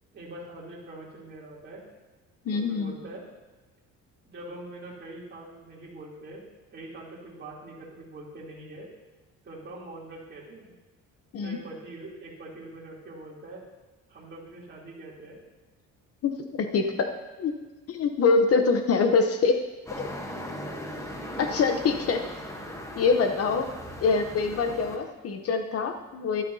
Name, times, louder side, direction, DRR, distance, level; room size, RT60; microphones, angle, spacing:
voice 1, 0.1-1.9 2.5-3.2 4.2-6.4 6.7-8.9 9.4-10.7 11.4-13.6 14.1-15.4 21.2-21.5, right 2 dB, 35° right, -4 dB, 3.2 m, -43 dB
voice 2, 2.5-2.9 11.3-11.6 16.2-17.1 17.4-17.5 17.9-19.6 20.0-20.1 21.4-22.2 23.0-23.7 24.0-26.4, left 4 dB, 50° left, 6 dB, 0.8 m, -24 dB
sound 1, 19.9-25.0, equal, 10° left, 1.1 m, -38 dB
12.5 x 12.5 x 2.8 m, 1.2 s
cardioid pair, 145°, 31 cm